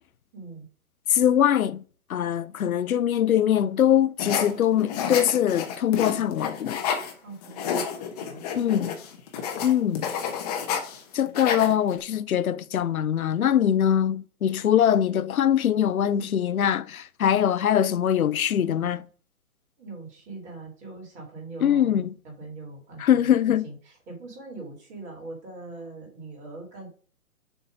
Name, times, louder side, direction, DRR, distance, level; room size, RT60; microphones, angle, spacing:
voice 1, 0.3-0.7 7.2-7.8 8.2-8.4 19.8-26.9, right 3 dB, 15° right, 2.2 m, -41 dB
voice 2, 1.1-1.8 2.1-6.8 8.5-9.0 9.6-10.1 11.1-19.0 21.6-22.1 23.0-23.7, left 10 dB, 75° left, 0.6 m, -22 dB
sound 1, 4.2-7.1 7.4-11.0 11.3-12.0, left 7 dB, 30° left, 0.9 m, -30 dB
7.1 x 2.9 x 4.9 m
figure-of-eight pair, 135°, 42 cm